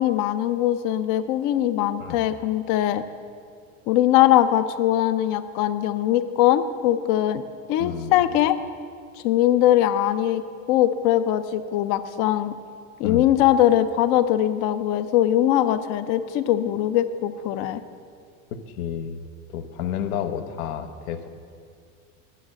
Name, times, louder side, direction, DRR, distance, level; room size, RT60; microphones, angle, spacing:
voice 1, 0.0-3.0 3.9-7.4 7.7-8.6 9.2-12.5 13.0-17.8, left 12 dB, 50° left, 12 dB, 0.6 m, -21 dB
voice 2, 7.8-8.2 13.0-13.3 18.5-19.2 19.5-21.3, left 9 dB, 80° left, 8 dB, 0.9 m, -30 dB
9.9 x 6.2 x 7.7 m, 2.3 s
supercardioid pair, 125°, 42 cm